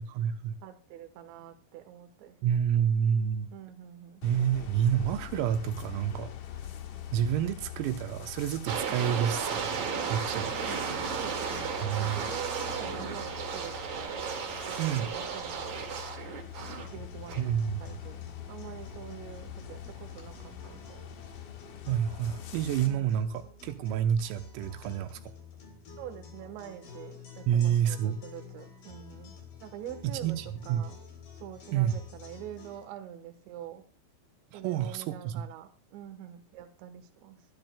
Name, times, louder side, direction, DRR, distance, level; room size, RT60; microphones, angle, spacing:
voice 1, 0.0-0.6 2.4-3.5 4.2-6.3 7.1-10.6 11.8-12.2 14.8-15.1 17.4-17.8 21.9-25.2 27.5-28.2 30.0-30.9 31.7-32.0 34.5-35.4, right 9 dB, 85° right, 8 dB, 3.6 m, -29 dB
voice 2, 0.6-2.6 3.5-4.2 10.4-14.2 14.7-16.0 16.7-17.4 17.8-21.0 22.8-23.2 26.0-30.4 30.7-31.0 31.3-33.9 34.5-37.4, right 10 dB, 70° right, 7 dB, 3.2 m, -45 dB
sound 1, 4.2-22.9, left 10 dB, 80° left, 1.9 m, -44 dB
sound 2, 8.7-16.9 17.3-17.4, right 6 dB, 55° right, 2.2 m, -34 dB
sound 3, 16.8-32.8, left 5 dB, 50° left, 4.8 m, -49 dB
22.5 x 12.5 x 2.2 m, 0.34 s
omnidirectional pair, 5.9 m